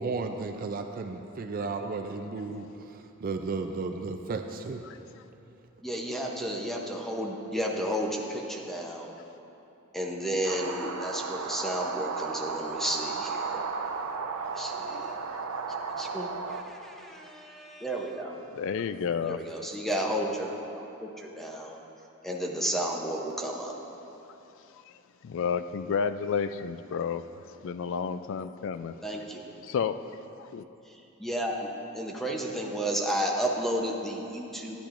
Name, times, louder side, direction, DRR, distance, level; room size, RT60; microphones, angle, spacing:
voice 1, 0.0-4.8, right 4 dB, 40° right, 6 dB, 0.4 m, -34 dB
voice 2, 5.8-9.1 9.9-13.6 14.5-15.1 16.0-18.4 19.2-21.8 22.2-23.7 29.0-29.4 30.9-34.8, right 1 dB, ahead, -1 dB, 0.7 m, -32 dB
sound 1, 10.4-16.6, right 5 dB, 90° right, 0.6 m, -34 dB
voice 3, 18.6-19.4 25.2-27.3 27.6-28.9 29.6-30.0 30.4-30.6, left 6 dB, 60° left, 12 dB, 0.3 m, -31 dB
13.0 x 10.0 x 2.5 m, 2.9 s
head